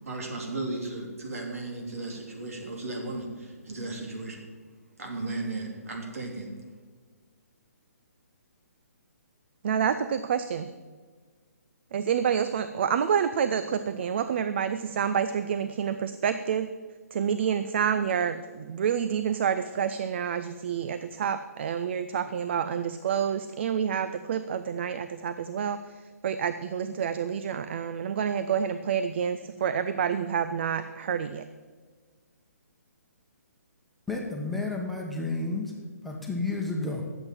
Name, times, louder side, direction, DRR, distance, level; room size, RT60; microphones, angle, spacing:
voice 1, 0.0-4.4 5.0-6.5, right 2 dB, 65° right, 1 dB, 3.3 m, -35 dB
voice 2, 9.6-10.7 11.9-16.7 17.1-25.8 26.2-31.4, right 8 dB, 45° right, 11 dB, 0.5 m, -28 dB
voice 3, 34.1-35.7 36.0-37.0, left 3 dB, ahead, -2 dB, 1.3 m, -31 dB
11.5 x 8.0 x 7.5 m, 1.5 s
figure-of-eight pair, 135°, 9 cm